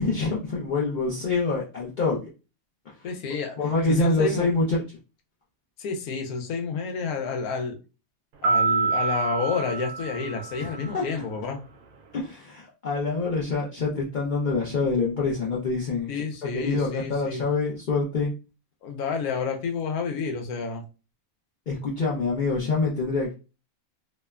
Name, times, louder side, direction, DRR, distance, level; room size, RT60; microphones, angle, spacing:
voice 1, 0.0-2.3 3.6-4.8 10.6-11.0 12.1-16.1 16.4-18.3 21.7-23.3, left 3 dB, 65° left, -5 dB, 0.4 m, -26 dB
voice 2, 3.0-3.6 3.8-4.5 5.8-7.8 8.4-11.6 16.1-17.4 18.8-20.8, left 5 dB, 85° left, 4 dB, 1.1 m, -30 dB
sound 1, 8.4-11.0, right 4 dB, 85° right, 1.1 m, -26 dB
2.9 x 2.1 x 2.3 m, 0.32 s
omnidirectional pair, 1.5 m